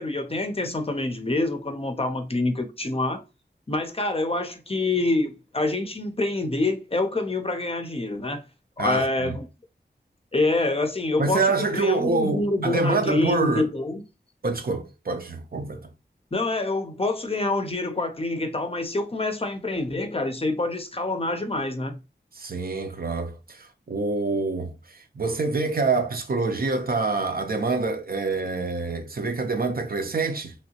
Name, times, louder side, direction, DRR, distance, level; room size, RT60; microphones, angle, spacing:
voice 1, 0.0-3.2 3.7-8.4 8.8-9.5 10.3-14.0 16.3-22.0, left 2 dB, 30° left, 0.5 m, -26 dB
voice 2, 8.8-9.4 11.2-13.7 14.4-15.9 22.3-30.5, right 3 dB, 55° right, 0.6 m, -26 dB
3.0 x 2.7 x 2.8 m
wide cardioid pair, 70°, 18 cm